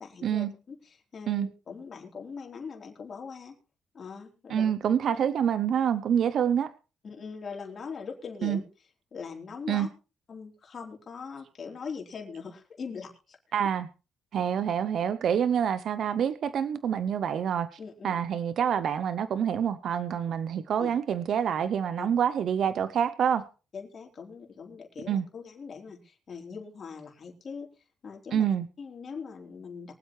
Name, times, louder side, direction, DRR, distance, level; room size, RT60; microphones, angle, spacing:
voice 1, 0.0-3.6 3.9-4.7 7.0-8.6 9.1-9.9 10.3-13.4 17.8-18.2 20.8-20.9 22.0-22.1 23.7-27.7 28.0-28.5 28.8-29.9, left 5 dB, 45° left, 1 dB, 3.8 m, -41 dB
voice 2, 4.5-6.7 8.4-8.6 9.7-9.9 13.5-13.9 14.3-17.8 18.0-23.5 25.1-25.2 28.3-28.7, right 8 dB, 65° right, 13 dB, 0.7 m, -27 dB
23.5 x 8.0 x 3.2 m, 0.33 s
cardioid pair, 90°, 0 cm